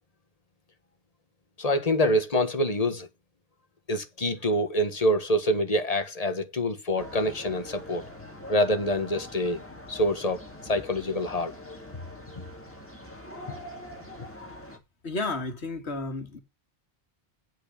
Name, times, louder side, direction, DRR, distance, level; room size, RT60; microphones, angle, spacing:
voice 1, 1.6-3.1 3.9-8.0 8.5-9.6 9.9-11.5, equal, 35° left, 1.4 m, -26 dB
sound 1, 7.0-14.8, left 1 dB, 10° left, 2.6 m, -43 dB
voice 2, 15.0-16.4, left 2 dB, 75° left, 2.1 m, -32 dB
7.9 x 6.1 x 7.1 m
omnidirectional pair, 1.1 m